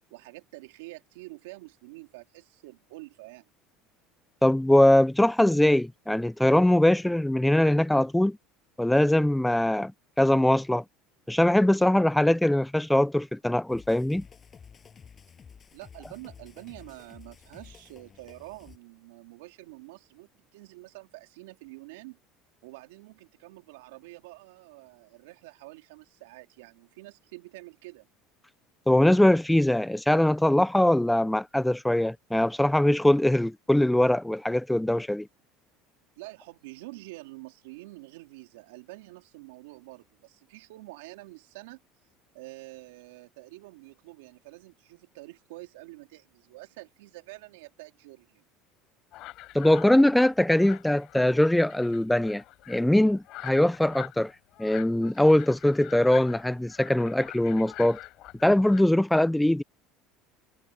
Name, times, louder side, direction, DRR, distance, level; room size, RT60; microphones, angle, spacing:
voice 1, 0.1-3.5 15.7-22.2 22.6-28.1 36.2-41.8 42.3-48.4, right 22 dB, 85° right, 3.8 m, -47 dB
voice 2, 4.4-8.4 8.8-9.9 10.2-10.8 11.3-14.2 28.9-35.3 49.5-54.3 54.6-58.0 58.4-59.6, left 1 dB, 5° left, 0.6 m, -22 dB
sound 1, 13.7-18.8, left 6 dB, 30° left, 7.6 m, -51 dB
sound 2, 49.1-58.8, left 17 dB, 60° left, 4.4 m, -45 dB
supercardioid pair, 100°, 0 cm